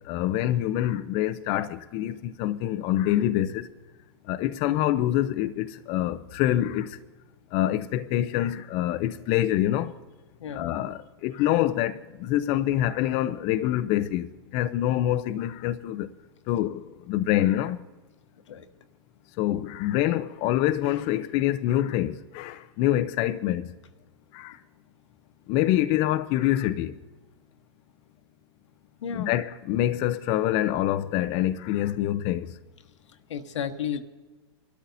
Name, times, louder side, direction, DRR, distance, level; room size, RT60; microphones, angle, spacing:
voice 1, 0.1-3.7 4.3-7.0 7.5-9.9 10.5-16.1 16.5-17.8 19.4-23.7 24.3-24.6 25.5-26.9 29.1-32.5, left 13 dB, 40° left, 0.6 m, -26 dB
voice 2, 29.0-29.3 33.1-34.0, left 7 dB, 80° left, 1.3 m, -33 dB
25.0 x 13.0 x 2.7 m
hypercardioid pair, 125°, 15 cm